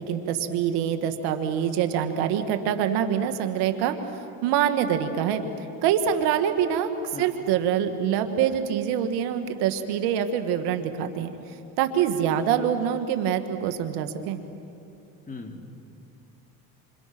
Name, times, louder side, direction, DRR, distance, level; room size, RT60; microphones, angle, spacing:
voice 1, 0.0-4.0 4.4-5.4 5.8-6.9 7.2-11.3 11.8-14.4, right 9 dB, 75° right, 8 dB, 2.1 m, -25 dB
voice 2, 15.3-15.8, left 3 dB, 20° left, 3 dB, 2.9 m, -39 dB
28.0 x 27.5 x 6.2 m, 2.6 s
supercardioid pair, 95°, 39 cm